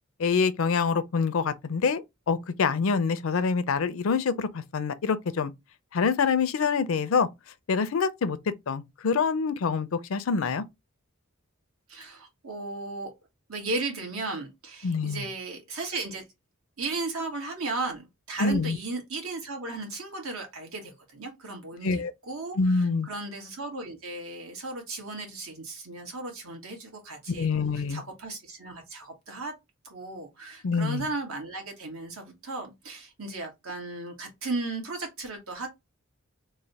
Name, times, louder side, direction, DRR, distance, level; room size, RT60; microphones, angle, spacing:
voice 1, 0.2-5.5 5.9-7.3 7.7-8.4 8.7-10.6 14.8-15.2 18.4-18.8 21.8-22.1 22.6-23.1 27.3-28.0 30.6-31.1, left 5 dB, 70° left, 0.5 m, -26 dB
voice 2, 11.9-13.1 13.5-16.2 16.8-27.6 27.9-29.5 29.8-35.7, right 3 dB, 85° right, 1.3 m, -35 dB
3.2 x 2.1 x 4.0 m
head